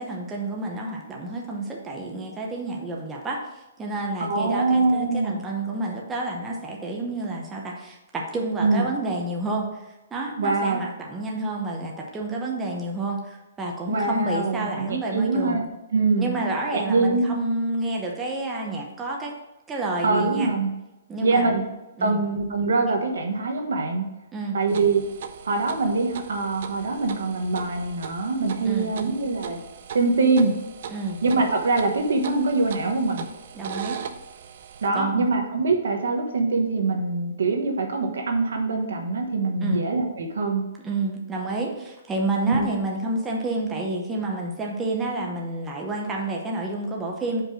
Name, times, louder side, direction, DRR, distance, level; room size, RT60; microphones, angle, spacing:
voice 1, 0.0-15.6 16.2-19.3 19.7-20.5 21.1-21.5 22.0-22.2 24.3-24.6 28.6-28.9 30.9-31.2 33.5-34.0 34.9-35.3 39.6-39.8 40.8-47.4, right 2 dB, 10° right, -1 dB, 0.7 m, -29 dB
voice 2, 4.2-5.4 8.6-8.9 10.4-10.8 13.9-15.6 15.9-16.3 16.7-17.2 20.0-20.7 21.2-21.6 22.0-24.1 24.5-25.0 25.4-29.6 29.9-30.5 31.2-33.2 34.8-40.6 42.5-42.7, right 3 dB, 85° right, 3 dB, 1.2 m, -23 dB
sound 1, 24.7-34.9, right 7 dB, 50° right, 0.5 m, -39 dB
5.2 x 4.7 x 6.2 m, 1.0 s
hypercardioid pair, 165°, 0 cm